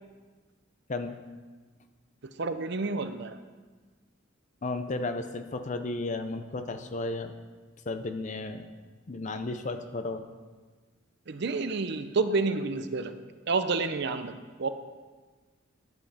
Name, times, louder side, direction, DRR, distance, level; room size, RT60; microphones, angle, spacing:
voice 1, 2.4-3.4 11.3-13.1 13.5-14.7, right 4 dB, 55° right, 10 dB, 0.6 m, -29 dB
voice 2, 4.6-7.3 7.9-8.6 9.1-10.2, left 2 dB, 35° left, 8 dB, 0.6 m, -33 dB
10.5 x 8.1 x 4.2 m, 1.4 s
head